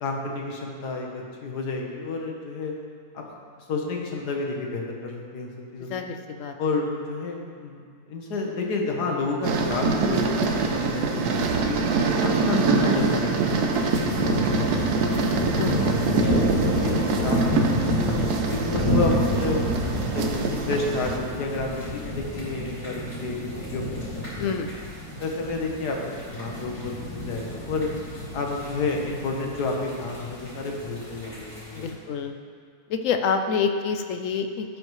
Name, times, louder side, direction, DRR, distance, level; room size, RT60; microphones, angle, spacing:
voice 1, 0.0-2.7 3.1-3.2 3.7-6.1 6.6-7.8 8.1-11.8 12.2-14.5 15.0-15.5 16.0-18.2 18.5-19.7 20.1-23.4 23.7-24.5 25.2-27.9 28.3-31.9, left 3 dB, 85° left, 0 dB, 1.7 m, -30 dB
voice 2, 5.9-6.5 15.4-15.7 24.4-24.7 31.7-32.3 32.9-34.8, left 6 dB, 65° left, 6 dB, 0.8 m, -27 dB
sound 1, 9.4-21.2, right 4 dB, 75° right, 1.3 m, -25 dB
sound 2, 13.7-31.9, equal, 15° left, 1.9 m, -29 dB
15.5 x 5.3 x 3.1 m, 2.1 s
omnidirectional pair, 1.7 m